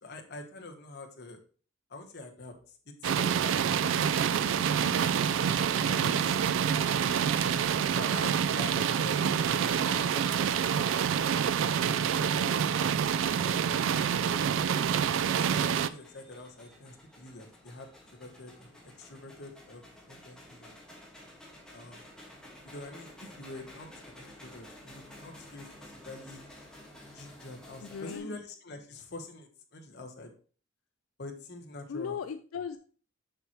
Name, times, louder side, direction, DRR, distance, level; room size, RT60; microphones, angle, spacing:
voice 1, 0.0-1.4 1.9-5.0 5.8-7.3 8.0-12.5 14.1-15.0 15.3-17.9 18.2-20.8 21.7-22.2 22.6-26.5 27.1-30.3 31.2-32.2, left 2 dB, 55° left, 4 dB, 1.1 m, -46 dB
sound 1, 3.0-15.9, right 8 dB, 65° right, 0.3 m, -27 dB
sound 2, 14.1-28.2, left 1 dB, 5° left, 1.5 m, -52 dB
voice 2, 27.8-28.4 31.9-32.8, left 6 dB, 85° left, 9 dB, 0.4 m, -37 dB
6.8 x 5.8 x 3.0 m, 0.41 s
head